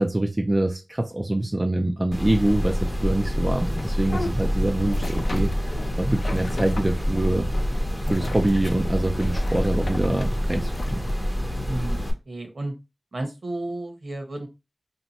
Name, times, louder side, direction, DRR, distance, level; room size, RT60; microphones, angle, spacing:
voice 1, 0.0-7.5 8.1-11.0, right 1 dB, 25° right, 0.4 m, -25 dB
sound 1, 2.1-12.1, equal, 5° left, 0.7 m, -26 dB
sound 2, 3.6-11.1, left 2 dB, 80° left, 0.5 m, -37 dB
voice 2, 11.7-12.0 12.3-12.7 13.1-14.5, right 2 dB, 65° right, 1.0 m, -32 dB
2.8 x 2.2 x 4.0 m
wide cardioid pair, 70°, 0 cm